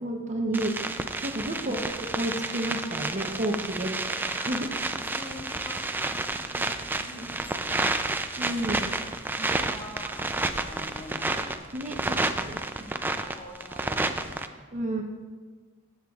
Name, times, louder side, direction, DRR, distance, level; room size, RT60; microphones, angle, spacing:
voice 1, 0.0-4.7 8.4-8.8 11.3-11.4 11.7-12.6 14.7-15.0, right 1 dB, 35° right, 2 dB, 0.7 m, -31 dB
sound 1, 0.5-14.5, right 2 dB, 10° right, 0.3 m, -30 dB
voice 2, 1.6-2.0 5.0-7.5 9.4-11.5 12.7-14.5, left 1 dB, 25° left, -3 dB, 1.9 m, -44 dB
14.5 x 7.7 x 2.4 m, 1.4 s
head